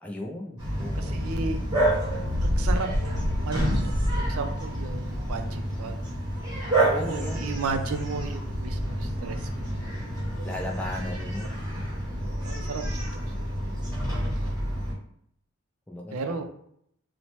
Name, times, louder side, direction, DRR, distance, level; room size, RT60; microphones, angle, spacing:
voice 1, 0.0-1.3 6.8-7.9 10.4-11.9 15.9-16.4, left 1 dB, 5° left, 0 dB, 0.3 m, -37 dB
Bark, 0.6-14.9, right 1 dB, 20° right, 0.9 m, -28 dB
voice 2, 0.9-1.6 2.4-2.9 3.4-3.8 4.1-6.0 6.9-9.7 11.2-11.3 12.2-13.1 13.3-13.9 14.3-14.5 16.1-16.4, right 4 dB, 85° right, 6 dB, 0.4 m, -34 dB
3.0 x 2.0 x 2.9 m, 0.69 s
head